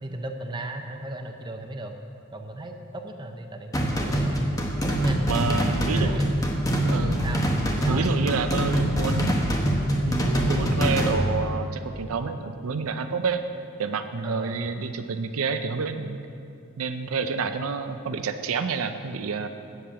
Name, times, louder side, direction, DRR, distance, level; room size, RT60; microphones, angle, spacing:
voice 1, 0.0-1.9 2.3-4.4 4.9-6.3 7.2-7.5 7.8-8.1 14.2-14.6, right 2 dB, 20° right, 4 dB, 0.6 m, -36 dB
sound 1, 3.7-11.1, equal, 15° left, 0.9 m, -24 dB
voice 2, 5.3-6.2 6.9-7.2 7.9-9.3 10.1-13.4 13.8-16.2 16.8-19.5, right 5 dB, 85° right, 8 dB, 0.5 m, -28 dB
8.6 x 7.7 x 6.8 m, 2.5 s
head